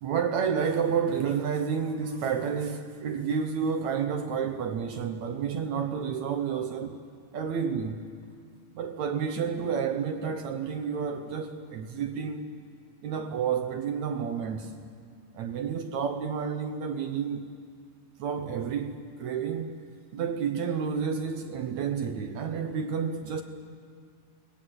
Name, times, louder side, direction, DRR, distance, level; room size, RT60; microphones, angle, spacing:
voice 1, 0.0-7.0 7.3-8.0 8.7-12.5 13.0-14.7 15.3-17.5 18.2-19.8 20.1-23.4, right 6 dB, 70° right, 1.8 m, -30 dB
28.5 x 19.5 x 7.9 m
omnidirectional pair, 4.4 m